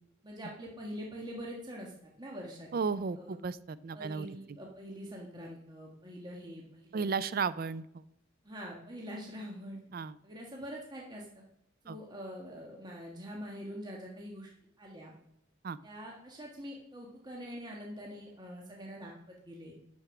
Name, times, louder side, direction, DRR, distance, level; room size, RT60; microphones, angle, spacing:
voice 1, 0.2-1.9 2.2-2.7 3.1-3.4 3.9-7.0 8.4-9.8 10.2-11.4 11.8-14.5 14.8-15.1 15.8-19.7, equal, 20° right, -2 dB, 1.5 m, -44 dB
voice 2, 2.7-4.6 6.9-8.0 9.9-10.1 11.9-12.0 15.6-15.8, right 5 dB, 45° right, 17 dB, 0.4 m, -34 dB
8.8 x 7.0 x 5.9 m, 0.82 s
head